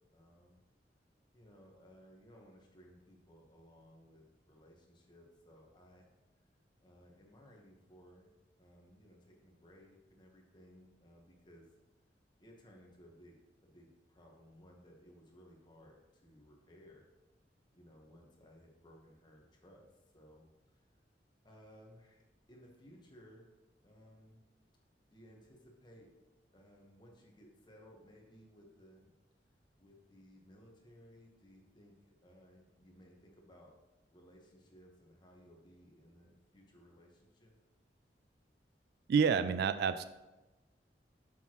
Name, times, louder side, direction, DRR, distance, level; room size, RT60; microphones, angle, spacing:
voice 1, 0.1-0.6 1.3-6.1 6.8-8.3 8.6-11.7 12.4-17.0 17.7-19.9 20.1-21.0 21.4-23.5 23.8-24.4 25.0-26.1 26.5-29.1 29.8-33.7 34.1-37.6, equal, 25° left, 0 dB, 1.2 m, -60 dB
voice 2, 39.1-40.0, right 6 dB, 60° right, 13 dB, 0.3 m, -28 dB
7.0 x 6.1 x 3.0 m, 1.0 s
head